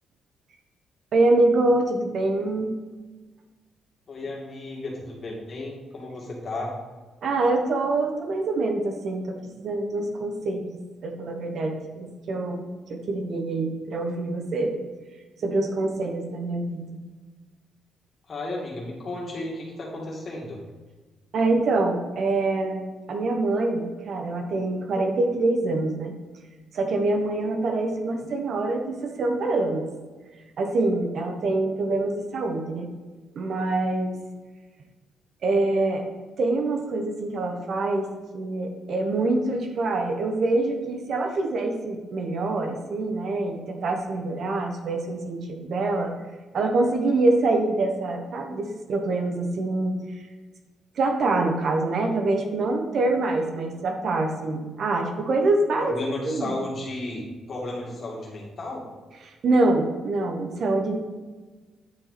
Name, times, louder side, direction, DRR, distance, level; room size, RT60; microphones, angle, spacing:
voice 1, 1.1-2.7 7.2-14.7 15.4-16.8 21.3-22.8 23.1-26.1 26.7-29.9 30.6-32.9 33.3-34.2 35.4-36.0 36.4-38.1 38.3-46.1 46.5-50.2 51.0-55.9 56.2-56.5 59.2-61.0, right 2 dB, 60° right, 4 dB, 1.1 m, -25 dB
voice 2, 4.1-6.8 18.3-20.6 55.8-58.9, left 2 dB, 40° left, -3 dB, 2.3 m, -33 dB
9.6 x 4.6 x 4.3 m, 1.3 s
cardioid pair, 105°, 0 cm